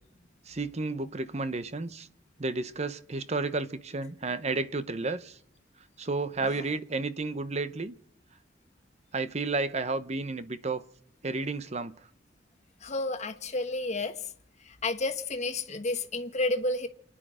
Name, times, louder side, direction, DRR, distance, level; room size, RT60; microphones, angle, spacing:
voice 1, 0.5-2.1 2.4-5.4 6.0-7.9 9.1-10.8 11.2-11.9, right 3 dB, 40° right, 0.8 m, -32 dB
voice 2, 12.8-14.1 14.8-16.9, left 2 dB, 40° left, 1.2 m, -30 dB
28.5 x 10.0 x 4.9 m
head